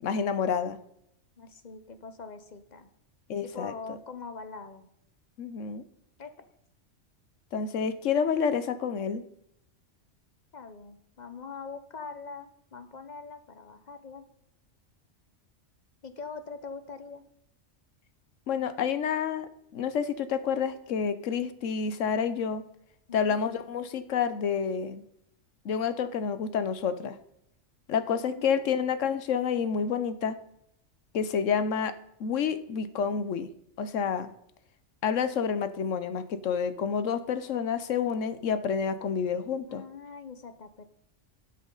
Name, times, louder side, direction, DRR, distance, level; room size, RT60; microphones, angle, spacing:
voice 1, 0.0-0.8 3.3-4.0 5.4-5.8 7.5-9.2 18.5-22.6 23.1-25.0 25.6-27.2 27.9-30.4 31.1-31.9 32.2-33.5 33.8-34.3 35.0-39.8, left 6 dB, 80° left, 12 dB, 1.2 m, -29 dB
voice 2, 1.4-2.9 3.4-4.9 6.2-6.5 10.5-14.3 16.0-17.2 23.1-23.4 28.2-28.9 39.7-40.8, left 4 dB, 40° left, 10 dB, 0.9 m, -43 dB
12.5 x 8.1 x 3.9 m, 0.76 s
omnidirectional pair, 1.3 m